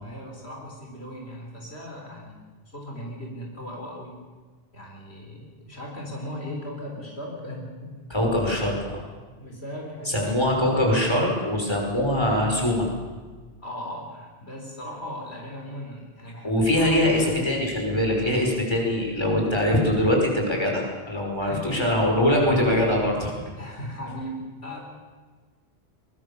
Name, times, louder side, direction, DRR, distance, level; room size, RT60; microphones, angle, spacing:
voice 1, 0.0-2.4 2.7-4.2 4.7-8.0 9.4-10.4 13.6-17.3 21.4-21.7 23.6-24.8, equal, 70° left, 0 dB, 4.4 m, -38 dB
voice 2, 8.1-9.0 10.1-12.9 16.4-23.3, left 1 dB, 25° left, -1 dB, 5.7 m, -23 dB
22.5 x 22.0 x 7.0 m, 1.4 s
omnidirectional pair, 1.1 m